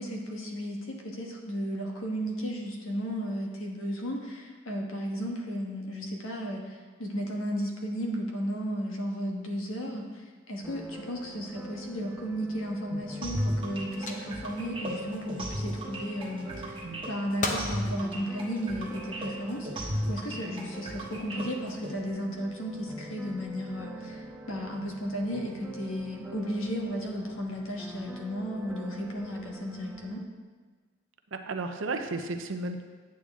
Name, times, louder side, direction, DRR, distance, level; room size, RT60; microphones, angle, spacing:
voice 1, 0.0-30.2, equal, 80° left, 1 dB, 1.4 m, -34 dB
sound 1, 10.6-30.2, right 1 dB, 5° right, 0.5 m, -45 dB
sound 2, 13.0-16.1 16.5-17.1 17.4-17.8 18.3-19.1 19.8-20.2, left 2 dB, 40° left, 0.8 m, -38 dB
sound 3, 13.2-21.9, equal, 25° right, 1.3 m, -34 dB
voice 2, 31.3-32.8, right 3 dB, 70° right, 7 dB, 0.7 m, -34 dB
8.8 x 8.6 x 3.6 m, 1.5 s
head